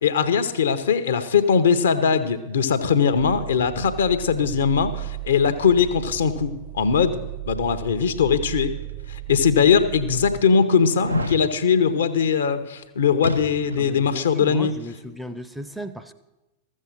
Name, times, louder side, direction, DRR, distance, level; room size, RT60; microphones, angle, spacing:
voice 1, 0.0-8.7 9.1-14.7, left 6 dB, 65° left, 11 dB, 0.8 m, -20 dB
sound 1, 3.1-10.4, right 16 dB, 45° right, 0.7 m, -36 dB
sound 2, 8.9-9.0 9.7-9.8 10.9-11.4 13.2-13.9 14.2-14.3, left 1 dB, 85° right, 0.8 m, -28 dB
voice 2, 13.8-16.1, equal, 5° right, 10 dB, 0.6 m, -36 dB
14.0 x 7.5 x 6.4 m, 1.0 s
figure-of-eight pair, 90°, 0 cm